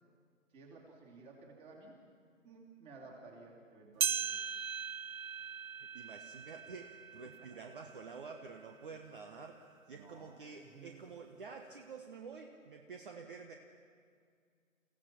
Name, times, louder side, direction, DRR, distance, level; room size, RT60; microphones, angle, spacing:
voice 1, 0.5-2.0 2.4-4.4 9.9-11.1, right 3 dB, 15° right, 0 dB, 2.8 m, -55 dB
sound 1, 4.0-8.7 9.2-9.3 10.1-10.2 11.1-11.2, right 7 dB, 80° right, 0.7 m, -39 dB
voice 2, 5.9-13.5, right 5 dB, 40° right, 4 dB, 1.3 m, -49 dB
29.0 x 16.0 x 6.0 m, 2.2 s
figure-of-eight pair, 150°, 41 cm